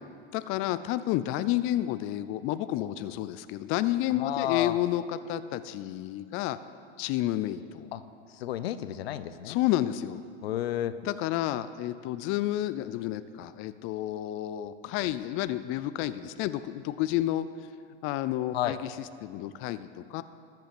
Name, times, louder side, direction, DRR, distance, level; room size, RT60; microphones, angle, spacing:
voice 1, 0.3-6.6 7.0-7.9 9.4-10.2 11.0-17.7 18.0-20.2, left 13 dB, 45° left, 13 dB, 0.5 m, -30 dB
voice 2, 4.2-4.7 7.9-8.0 8.4-9.6 10.4-10.9 18.5-18.7, left 12 dB, 85° left, 13 dB, 0.6 m, -31 dB
14.0 x 5.7 x 7.7 m, 2.3 s
hypercardioid pair, 110°, 30 cm